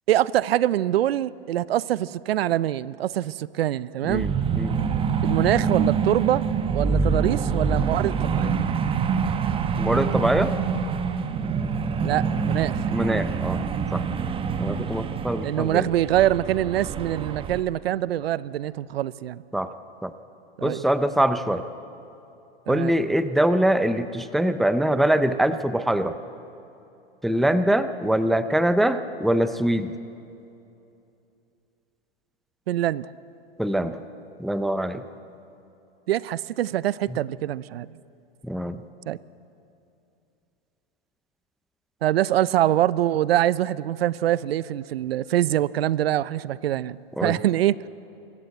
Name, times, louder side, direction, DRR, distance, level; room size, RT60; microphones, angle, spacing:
voice 1, 0.1-4.3 5.2-6.5 6.7-8.6 12.0-12.8 14.6-14.8 15.4-19.4 20.6-20.8 22.7-22.9 32.7-33.1 36.1-37.9 39.1-39.2 42.0-47.8, right 13 dB, 85° right, 20 dB, 0.6 m, -24 dB
voice 2, 4.0-4.8 9.8-10.6 12.9-13.6 13.9-14.0 14.6-15.9 19.5-19.7 20.0-20.1 20.6-21.7 22.7-26.2 27.2-29.9 33.6-34.0 34.4-35.0 37.1-37.2 38.4-38.8 47.2-47.4, right 1 dB, ahead, 12 dB, 0.4 m, -23 dB
sound 1, 4.1-17.6, right 6 dB, 20° right, 0.9 m, -26 dB
25.0 x 14.5 x 8.0 m, 2.8 s
hypercardioid pair, 130°, 30 cm